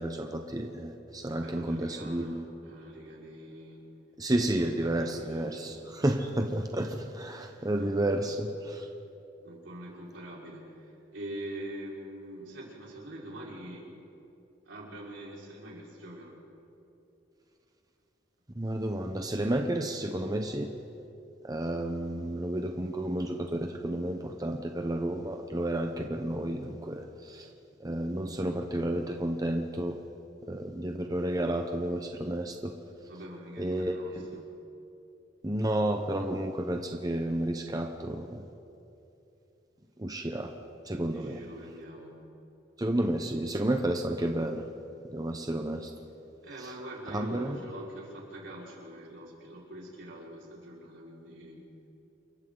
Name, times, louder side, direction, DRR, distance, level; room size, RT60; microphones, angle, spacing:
voice 1, 0.0-2.5 4.2-8.9 18.6-20.7 21.4-27.5 27.8-30.0 30.5-32.7 33.6-34.4 35.4-38.4 40.0-40.5 40.8-41.4 42.8-44.7 45.1-45.9 46.6-46.7 47.1-47.6, right 1 dB, 20° right, 4 dB, 0.9 m, -31 dB
voice 2, 1.3-3.9 4.6-6.1 7.3-8.3 9.4-13.9 14.6-16.4 33.1-34.5 41.1-42.2 46.4-51.7, right 1 dB, 75° right, -4 dB, 5.2 m, -44 dB
28.5 x 23.0 x 4.0 m, 2.8 s
head